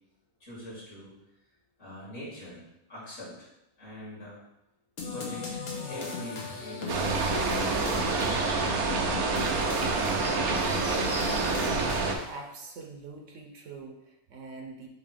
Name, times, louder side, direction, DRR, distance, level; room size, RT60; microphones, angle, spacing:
voice 1, 0.4-1.1 1.8-2.6 2.9-3.5 3.8-4.4 5.1-8.6, equal, 60° left, -7 dB, 2.9 m, -42 dB
sound 1, 5.0-12.4, left 4 dB, 85° left, 1.6 m, -38 dB
sound 2, 6.9-12.1, right 4 dB, 90° right, 1.2 m, -27 dB
sound 3, 8.1-8.8 9.6-9.7 10.1-11.9, equal, ahead, 0.8 m, -41 dB
voice 2, 12.2-14.9, right 4 dB, 65° right, 2 dB, 1.1 m, -44 dB
6.5 x 3.0 x 5.1 m, 0.87 s
omnidirectional pair, 1.5 m